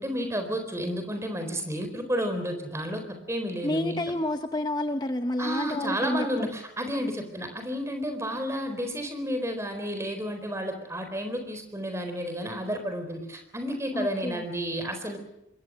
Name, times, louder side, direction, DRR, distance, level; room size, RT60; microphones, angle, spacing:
voice 1, 0.0-3.0 3.3-4.0 5.4-15.2, equal, 15° right, 6 dB, 4.1 m, -31 dB
voice 2, 3.6-6.5 13.9-14.4, left 1 dB, 20° left, 8 dB, 0.8 m, -29 dB
26.5 x 22.0 x 6.3 m, 0.84 s
head